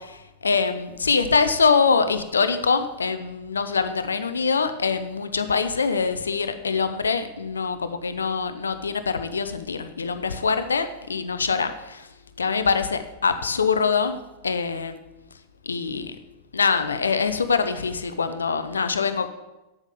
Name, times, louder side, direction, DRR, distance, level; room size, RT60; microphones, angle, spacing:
voice 1, 0.0-12.1 12.4-14.2 14.4-15.0 15.6-16.2 16.5-19.3, left 5 dB, 85° left, 9 dB, 0.7 m, -24 dB
8.1 x 7.2 x 8.2 m, 1.0 s
hypercardioid pair, 95°, 0 cm